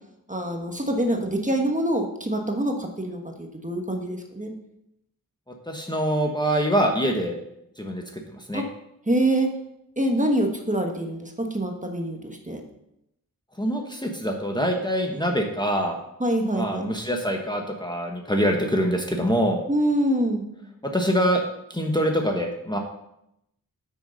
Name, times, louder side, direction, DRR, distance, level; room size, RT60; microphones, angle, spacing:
voice 1, 0.3-4.5 8.5-8.6 9.1-9.5 10.0-12.2 12.5-12.6 16.2-16.9 19.7-20.4, right 1 dB, 20° right, 3 dB, 1.4 m, -25 dB
voice 2, 5.5-7.4 7.8-8.6 13.5-16.0 16.5-19.6 20.8-21.4 21.7-22.8, equal, 10° left, 2 dB, 1.2 m, -24 dB
8.5 x 6.3 x 5.3 m, 0.81 s
wide cardioid pair, 65°, 36 cm